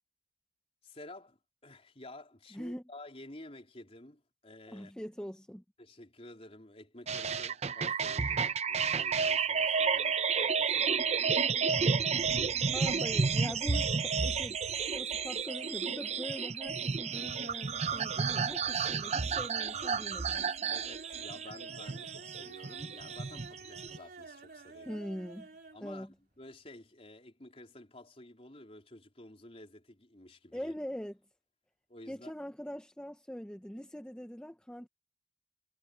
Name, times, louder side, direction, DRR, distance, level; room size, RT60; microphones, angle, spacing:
voice 1, 0.8-4.9 5.8-12.0 12.3-13.0 20.7-25.0 25.7-30.8 31.9-32.3, left 1 dB, 35° left, 4.0 m, -52 dB
voice 2, 4.7-5.6 12.7-14.6 14.9-20.8 24.9-25.5 25.8-26.1 30.5-31.1 32.1-34.9, equal, 5° left, 0.7 m, -42 dB
sound 1, 7.1-24.0, right 5 dB, 40° right, 0.7 m, -31 dB
sound 2, 15.1-15.7 16.0-16.5 16.8-25.8 26.1-26.2 26.5-26.6, right 3 dB, 60° right, 4.4 m, -51 dB
head